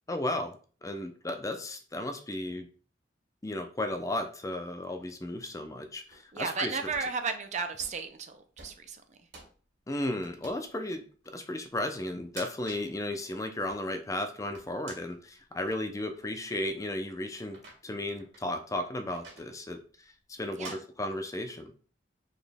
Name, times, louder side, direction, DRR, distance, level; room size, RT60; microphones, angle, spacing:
voice 1, 0.1-0.6 0.8-2.7 3.4-6.7 9.9-19.8 20.3-21.7, left 1 dB, 20° left, 0.5 m, -34 dB
sound 1, 5.3-6.2 6.8-7.1 7.8-8.1 8.6-8.9 9.3-9.5 10.2-10.7 11.2-11.3 12.1-12.9 13.3-15.2 15.7-15.8 16.5-16.7 17.5-18.4 19.1-19.5 20.5-20.8, right 3 dB, 65° right, 1.8 m, -49 dB
voice 2, 6.3-9.3 20.6-20.8, right 5 dB, 40° right, 0.5 m, -34 dB
4.0 x 3.1 x 3.4 m
head